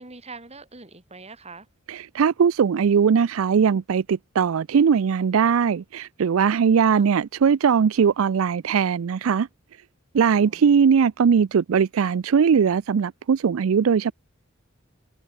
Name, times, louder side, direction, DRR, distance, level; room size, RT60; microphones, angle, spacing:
voice 1, 0.0-1.7 6.9-7.1 10.3-10.7, right 3 dB, 30° right, 3.8 m, -43 dB
voice 2, 1.9-9.5 10.1-14.1, right 6 dB, 85° right, 0.4 m, -20 dB
head